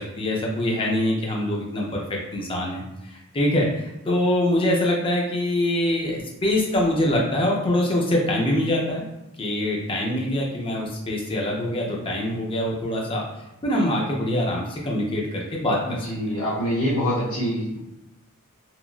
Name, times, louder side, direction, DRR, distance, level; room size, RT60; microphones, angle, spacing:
voice 1, 0.0-9.1 9.4-13.2 13.6-16.1, left 1 dB, 25° left, -2 dB, 0.5 m, -24 dB
voice 2, 15.9-17.8, equal, 65° left, -7 dB, 0.7 m, -25 dB
2.9 x 2.4 x 2.4 m, 0.91 s
head